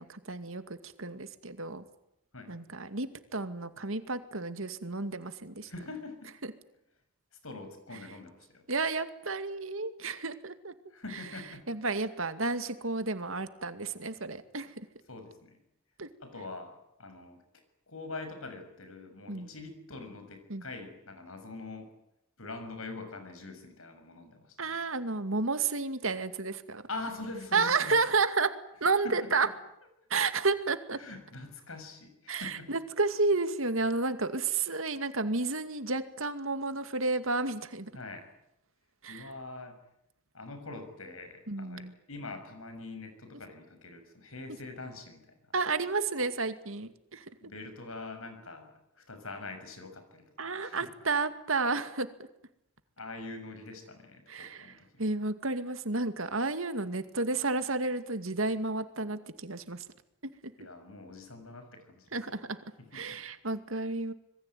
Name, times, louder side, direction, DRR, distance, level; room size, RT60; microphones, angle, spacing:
voice 1, 0.0-1.8 2.5-5.7 8.7-10.7 11.7-14.9 16.0-16.1 19.3-19.5 20.5-20.6 24.6-26.8 27.5-28.5 28.8-29.5 30.1-31.0 32.3-37.9 39.0-39.2 41.5-41.9 45.5-47.2 50.4-52.1 54.3-59.8 62.1-62.6 62.9-64.1, right 3 dB, 70° right, 10 dB, 2.3 m, -31 dB
voice 2, 5.6-6.4 7.4-8.6 10.9-11.7 15.1-15.6 16.2-17.4 17.9-22.0 22.4-24.8 26.9-28.0 29.0-29.5 31.0-32.7 37.9-38.3 39.1-39.8 40.3-45.6 47.4-50.9 53.0-55.0 60.6-62.1 62.8-63.2, left 3 dB, 80° left, 7 dB, 6.7 m, -44 dB
26.5 x 22.0 x 9.3 m, 0.81 s
head